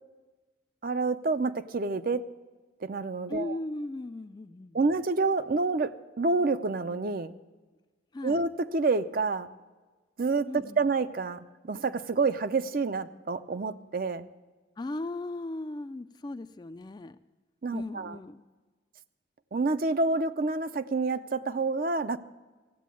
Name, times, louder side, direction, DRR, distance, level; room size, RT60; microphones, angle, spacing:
voice 1, 0.8-2.2 2.8-3.6 4.7-7.3 8.2-9.5 10.2-14.3 17.6-18.2 19.5-22.2, right 3 dB, 50° right, 12 dB, 0.5 m, -28 dB
voice 2, 3.3-4.9 8.1-8.5 10.5-10.8 14.8-17.2 17.7-18.4, left 2 dB, 20° left, 12 dB, 0.3 m, -37 dB
15.0 x 8.3 x 8.4 m, 1.3 s
head